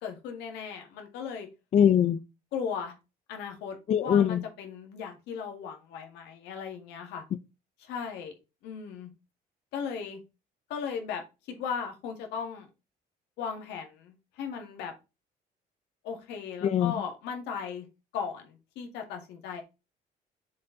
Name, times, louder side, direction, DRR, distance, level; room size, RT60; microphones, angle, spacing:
voice 1, 0.0-1.5 2.5-2.9 3.3-7.2 7.8-8.4 8.6-9.1 9.7-10.2 10.7-11.2 11.5-12.7 13.4-14.9 16.0-17.9 18.1-19.6, left 6 dB, 90° left, 2.0 m, -37 dB
voice 2, 1.7-2.2 3.9-4.4 16.6-16.9, left 9 dB, 40° left, 0.4 m, -22 dB
7.4 x 4.5 x 3.9 m
cardioid pair, 110°, 17 cm